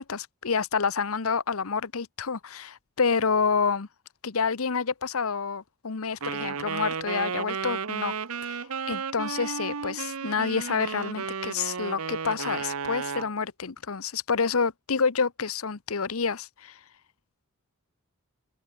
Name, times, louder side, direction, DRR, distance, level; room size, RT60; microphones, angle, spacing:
voice 1, 0.0-3.9 4.2-8.1 8.4-16.8, left 5 dB, 70° left, 0.9 m, -28 dB
Wind instrument woodwind instrument, 6.2-13.3, right 6 dB, 75° right, 0.9 m, -33 dB
head